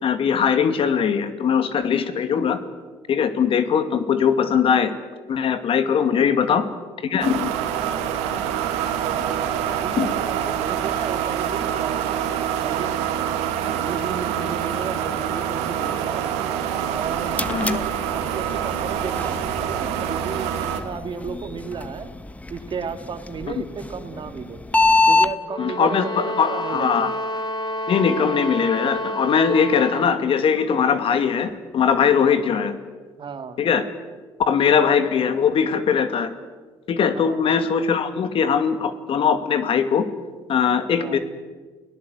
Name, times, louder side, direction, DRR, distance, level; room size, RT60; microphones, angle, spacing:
voice 1, 0.0-2.6 3.1-4.9 5.3-6.6 7.0-7.5 10.0-10.1 17.5-17.8 25.6-27.1 27.9-32.8 33.6-33.8 34.5-36.3 36.9-40.1 40.5-41.2, left 7 dB, 55° left, 10 dB, 2.4 m, -20 dB
sound 1, 7.2-20.8, right 9 dB, 85° right, 2.4 m, -26 dB
voice 2, 9.0-9.5 9.8-12.1 12.6-13.0 13.6-16.3 16.9-22.1 22.5-24.6 25.1-27.1 32.2-32.4 33.2-33.6 37.1-37.4 41.0-41.2, right 5 dB, 50° right, 8 dB, 2.4 m, -34 dB
sound 2, 16.9-25.3, left 3 dB, 15° left, 1.4 m, -26 dB
sound 3, 25.4-30.2, left 1 dB, 40° left, 4.4 m, -29 dB
30.0 x 18.0 x 8.1 m, 1.4 s
supercardioid pair, 70°, 11 cm